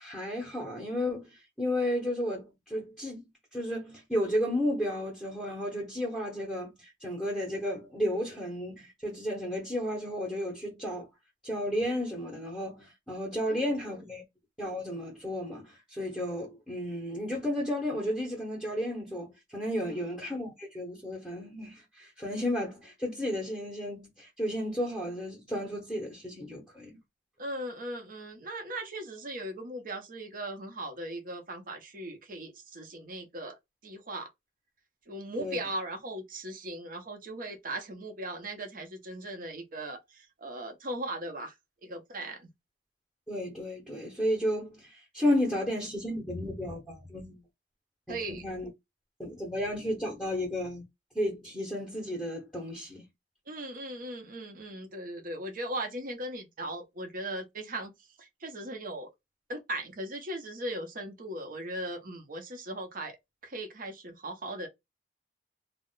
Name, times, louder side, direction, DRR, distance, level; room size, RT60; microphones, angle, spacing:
voice 1, 0.0-3.3 3.5-11.1 11.4-14.2 14.6-27.0 35.4-35.6 43.3-47.4 48.1-48.7 49.2-50.8 51.1-53.0, left 1 dB, 5° left, 0.8 m, -33 dB
voice 2, 27.4-33.5 33.8-34.3 35.1-41.5 41.8-42.5 48.1-48.4 53.5-57.9 58.2-59.1 59.5-63.2 63.4-64.7, right 1 dB, 50° right, 0.8 m, -38 dB
2.4 x 2.1 x 3.7 m
head